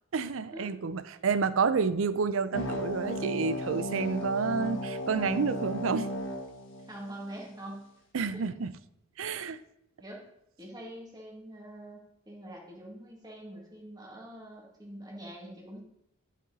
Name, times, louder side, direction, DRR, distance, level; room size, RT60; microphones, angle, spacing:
voice 1, 0.1-6.1 8.1-8.7 9.2-9.6, right 5 dB, 70° right, 15 dB, 0.5 m, -29 dB
sound 1, 2.5-7.5, equal, 65° left, 1.5 m, -35 dB
voice 2, 6.9-7.9 8.3-8.4 10.0-10.2 10.6-12.0 12.3-15.8, right 1 dB, 20° right, -2 dB, 2.1 m, -44 dB
11.0 x 5.0 x 4.1 m, 0.79 s
head